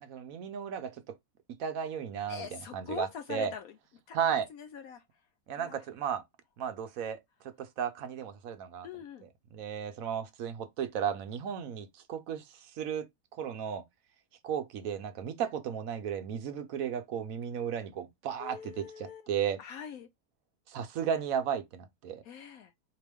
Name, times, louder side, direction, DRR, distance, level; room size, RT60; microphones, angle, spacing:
voice 1, 0.0-1.2 1.6-3.5 4.1-4.5 5.5-6.2 6.6-7.2 7.6-8.9 9.2-12.4 12.8-13.1 13.4-13.8 14.4-19.6 20.7-22.2, right 8 dB, 65° right, 1.1 m, -34 dB
voice 2, 2.3-3.7 4.1-4.2 4.5-5.0 5.6-5.8 8.8-9.3 18.4-19.3 19.6-20.1 22.3-22.7, left 7 dB, 70° left, 1.0 m, -43 dB
4.3 x 2.9 x 3.5 m
omnidirectional pair, 1.7 m